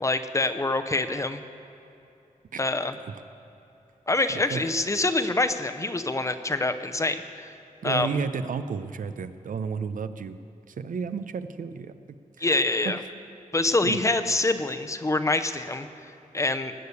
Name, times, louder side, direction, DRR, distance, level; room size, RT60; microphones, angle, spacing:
voice 1, 0.0-1.4 2.6-2.9 4.1-7.5 7.8-8.1 12.4-13.0 13.5-15.9 16.3-16.7, left 2 dB, 20° left, 9 dB, 0.6 m, -25 dB
voice 2, 4.3-4.6 7.8-10.4 10.7-11.9 12.4-12.5 12.8-12.9 13.8-14.0, right 6 dB, 75° right, 11 dB, 0.6 m, -32 dB
19.5 x 6.8 x 8.3 m, 2.9 s
wide cardioid pair, 150°, 14 cm